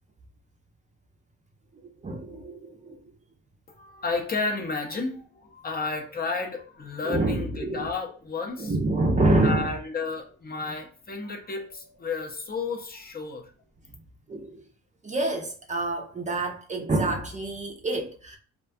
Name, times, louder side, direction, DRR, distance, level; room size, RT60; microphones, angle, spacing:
voice 1, 2.0-3.0 7.0-7.9 8.6-9.8 14.3-14.6 15.0-18.4, right 2 dB, 25° right, 0.5 m, -27 dB
voice 2, 3.7-8.7 9.4-13.5, left 4 dB, 30° left, 0.6 m, -32 dB
2.3 x 2.2 x 2.5 m
cardioid pair, 90°, 30 cm